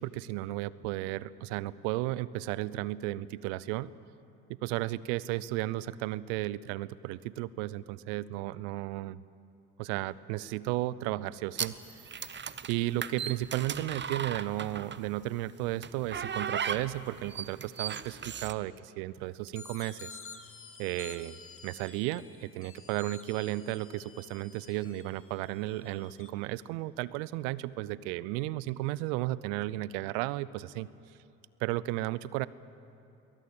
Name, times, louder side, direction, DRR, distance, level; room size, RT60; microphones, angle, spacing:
voice 1, 0.0-3.9 4.5-9.2 9.8-11.8 12.7-20.2 20.8-30.9 31.6-32.5, right 16 dB, 75° right, 19 dB, 0.7 m, -34 dB
sound 1, 11.6-15.1 15.8-18.5, right 7 dB, 30° right, 1.0 m, -36 dB
sound 2, 19.5-26.3, left 5 dB, 40° left, 2.5 m, -50 dB
22.5 x 18.5 x 8.7 m, 2.6 s
hypercardioid pair, 50°, 35 cm